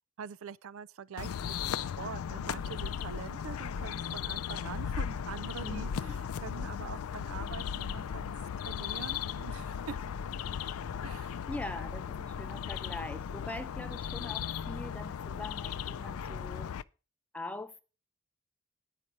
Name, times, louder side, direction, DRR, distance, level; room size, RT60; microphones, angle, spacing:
voice 1, 0.2-8.3 8.6-10.0 11.0-11.4, right 6 dB, 70° right, 0.4 m, -44 dB
sound 1, 1.2-16.8, left 8 dB, 85° left, 0.4 m, -37 dB
voice 2, 5.6-6.2 11.5-16.7 17.3-17.8, left 2 dB, 5° left, 0.6 m, -42 dB
9.7 x 5.8 x 6.2 m
head